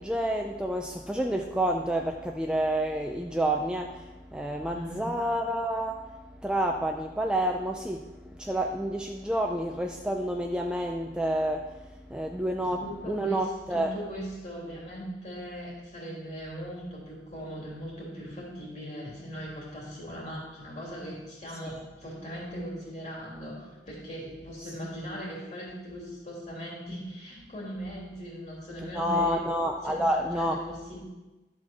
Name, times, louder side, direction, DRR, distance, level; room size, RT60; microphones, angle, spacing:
voice 1, 0.0-6.1 6.4-11.7 12.1-12.8 13.1-13.9 24.6-24.7 28.9-30.6, right 1 dB, 5° right, 2 dB, 0.4 m, -29 dB
voice 2, 4.7-5.1 12.6-29.4 29.8-31.0, equal, 40° left, -4 dB, 3.0 m, -39 dB
12.0 x 4.4 x 6.0 m, 1.1 s
head